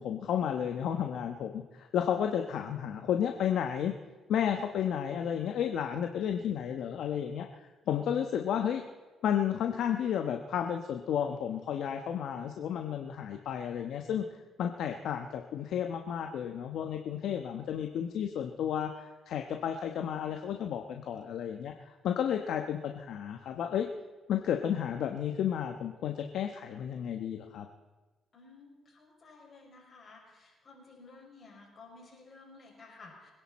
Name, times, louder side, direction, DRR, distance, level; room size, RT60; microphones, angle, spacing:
voice 1, 0.0-3.9 4.3-7.5 7.9-8.8 9.2-14.2 14.6-21.7 22.0-23.9 24.3-27.7, left 9 dB, 75° left, 4 dB, 1.1 m, -32 dB
voice 2, 28.3-33.3, left 3 dB, 45° left, -1 dB, 5.8 m, -54 dB
25.0 x 11.0 x 4.3 m, 1.2 s
cardioid pair, 90°, 0 cm